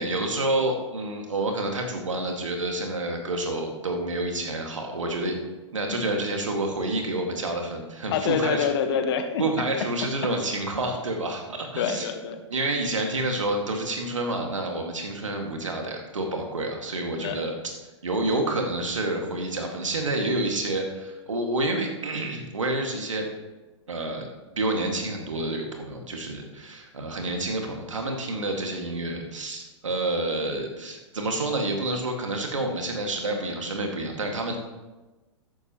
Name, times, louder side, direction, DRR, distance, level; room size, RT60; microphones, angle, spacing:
voice 1, 0.0-5.4 5.7-8.7 9.4-12.1 12.5-17.5 18.0-23.3 23.9-34.6, right 2 dB, 85° right, 2 dB, 2.1 m, -28 dB
voice 2, 8.1-9.4 11.8-12.4 17.2-17.5, left 7 dB, 55° left, 8 dB, 1.3 m, -26 dB
13.0 x 10.5 x 3.1 m, 1.2 s
hypercardioid pair, 110°, 16 cm